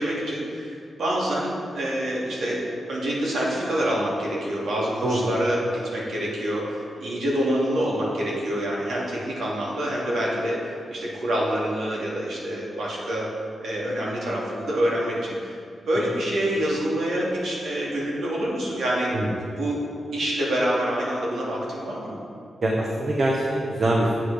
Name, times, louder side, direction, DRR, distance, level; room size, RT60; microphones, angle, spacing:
voice 1, 0.0-2.6 2.9-13.3 13.6-15.5 15.9-19.1 19.6-19.8 20.1-22.2, right 1 dB, 85° right, -5 dB, 2.7 m, -26 dB
voice 2, 5.0-5.3 19.1-19.3 22.6-24.2, right 1 dB, 50° right, -2 dB, 1.4 m, -23 dB
9.4 x 8.1 x 5.2 m, 2.4 s
cardioid pair, 95°, 0 cm